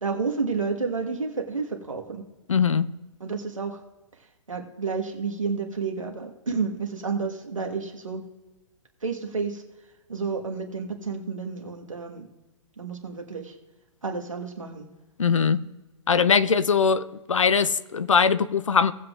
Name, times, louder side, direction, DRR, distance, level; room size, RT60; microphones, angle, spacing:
voice 1, 0.0-2.2 3.2-3.8 4.5-8.2 9.0-9.6 10.1-12.3 12.8-13.5 14.0-14.9, right 4 dB, 85° right, 1.5 m, -30 dB
voice 2, 2.5-2.9 15.2-15.6 16.1-18.9, left 6 dB, 75° left, 0.6 m, -21 dB
17.5 x 7.8 x 2.4 m
figure-of-eight pair, 120°, 16 cm